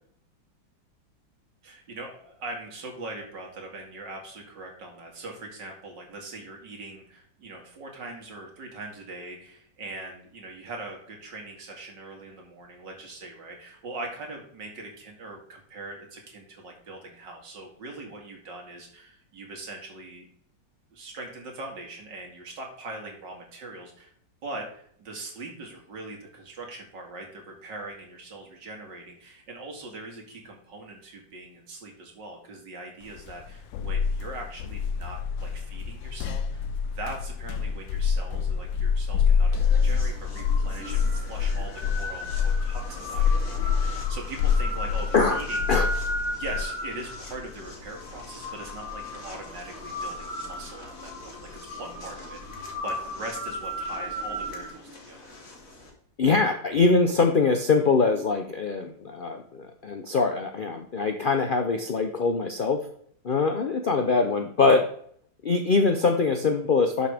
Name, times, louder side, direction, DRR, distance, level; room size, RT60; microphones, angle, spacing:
voice 1, 1.6-20.3 20.9-24.1 24.4-45.7 46.3-55.4, right 2 dB, 75° right, 1 dB, 2.7 m, -41 dB
sound 1, 33.2-46.6, left 6 dB, 90° left, 1.4 m, -26 dB
sound 2, 39.5-55.9, left 1 dB, 50° left, 2.2 m, -36 dB
voice 2, 56.2-62.8 63.2-64.8 65.4-67.1, left 4 dB, 65° left, 5 dB, 0.5 m, -23 dB
11.5 x 6.5 x 3.5 m, 0.63 s
omnidirectional pair, 2.0 m